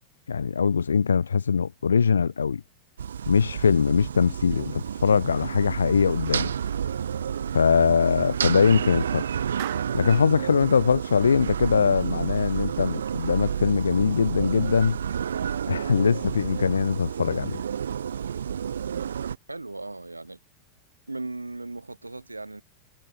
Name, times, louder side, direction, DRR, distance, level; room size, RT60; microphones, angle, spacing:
voice 1, 0.3-2.6 3.3-6.5 7.5-9.3 9.9-15.0 15.7-17.6, left 6 dB, 70° left, 0.3 m, -22 dB
sound 1, 3.0-19.4, right 8 dB, 65° right, 0.8 m, -30 dB
Clapping, 9.6-10.3, right 23 dB, 50° right, 1.9 m, -39 dB
voice 2, 19.5-20.4 21.1-22.6, right 2 dB, 85° right, 6.1 m, -37 dB
figure-of-eight pair, 90°, 0 cm